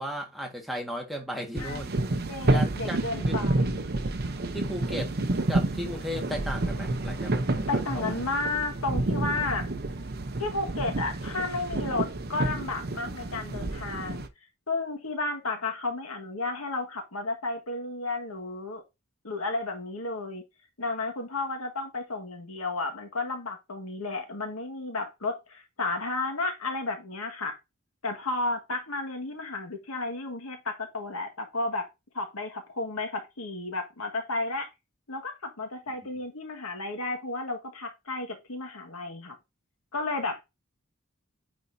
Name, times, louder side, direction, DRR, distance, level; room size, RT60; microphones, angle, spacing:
voice 1, 0.0-1.9 2.5-3.4 4.5-5.1 5.5-7.7 7.9-8.2, equal, ahead, 1.6 m, -35 dB
sound 1, 1.6-14.3, right 2 dB, 50° right, 0.7 m, -29 dB
voice 2, 2.3-3.9 7.7-9.7 10.4-14.3 14.7-18.8 19.2-20.4 20.8-27.6 28.0-31.9 32.1-34.7 35.1-39.3 39.9-40.4, left 3 dB, 85° left, 1.7 m, -32 dB
9.3 x 4.2 x 2.7 m
head